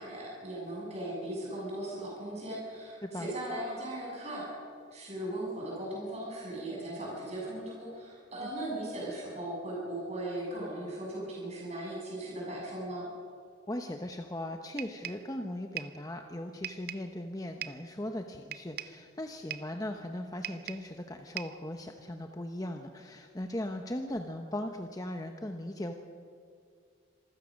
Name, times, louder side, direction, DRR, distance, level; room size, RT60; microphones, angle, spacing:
voice 1, 0.0-4.5 4.9-13.1, right 1 dB, 35° right, -5 dB, 7.5 m, -38 dB
voice 2, 13.7-25.9, left 1 dB, 20° left, 5 dB, 0.9 m, -38 dB
sound 1, 14.8-15.3 15.8-16.0 16.6-17.1 17.6-17.9 18.5-19.0 19.5-19.8 20.4-20.9 21.4-21.7, right 12 dB, 50° right, 0.6 m, -41 dB
26.0 x 16.0 x 6.4 m, 2.2 s
head